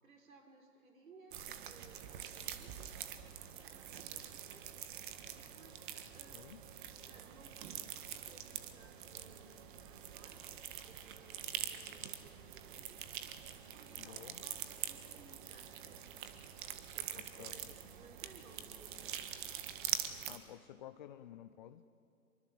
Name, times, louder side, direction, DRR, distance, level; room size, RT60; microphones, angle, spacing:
voice 1, 0.0-2.9 3.5-4.7 5.3-5.9 6.1-6.5 7.1-13.0 13.5-16.0 16.9-19.6 20.8-20.9, right 3 dB, 65° right, 4 dB, 4.9 m, -61 dB
sound 1, 1.3-20.4, right 10 dB, 35° right, 1.7 m, -45 dB
voice 2, 6.3-6.6 14.0-14.4 17.4-17.7 20.3-21.8, left 11 dB, 30° left, 10 dB, 0.7 m, -52 dB
25.0 x 23.5 x 7.7 m, 2.3 s
figure-of-eight pair, 135°, 44 cm